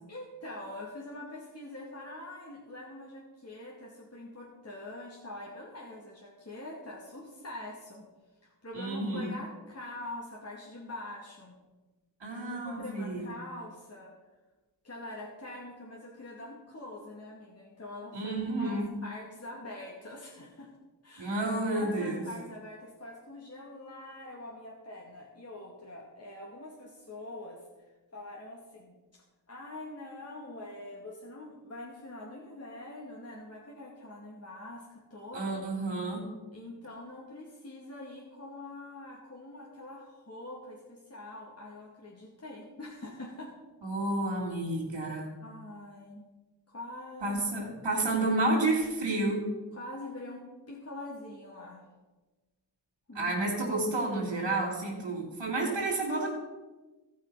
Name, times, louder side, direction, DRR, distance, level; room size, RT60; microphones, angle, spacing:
voice 1, 0.1-8.1 8.4-11.6 12.6-14.1 14.8-20.7 21.0-21.4 21.6-27.6 28.1-35.6 36.5-43.5 45.4-46.2 46.7-47.4 47.9-48.0 49.7-51.8 53.1-53.5, left 1 dB, 30° left, -3 dB, 2.3 m, -44 dB
voice 2, 8.7-9.3 12.2-13.3 18.1-18.9 21.2-22.2 35.3-36.2 43.8-45.3 47.2-49.4 53.1-56.3, right 2 dB, 70° right, -6 dB, 3.3 m, -30 dB
15.0 x 5.6 x 5.6 m, 1.2 s
cardioid pair, 50°, 46 cm